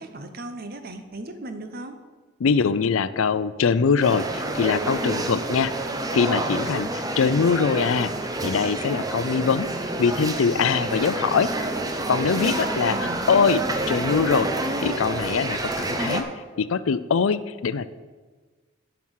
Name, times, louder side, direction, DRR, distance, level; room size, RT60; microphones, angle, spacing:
voice 1, 0.0-1.9 12.3-13.2, right 1 dB, 50° right, 7 dB, 0.9 m, -36 dB
voice 2, 2.4-5.7 6.1-8.1 8.4-9.7 10.0-11.5 12.1-14.5 14.8-16.3 16.6-17.9, left 5 dB, 90° left, 15 dB, 0.5 m, -23 dB
sound 1, 4.0-16.2, right 2 dB, 20° right, 0.7 m, -28 dB
11.0 x 5.9 x 6.4 m, 1.4 s
head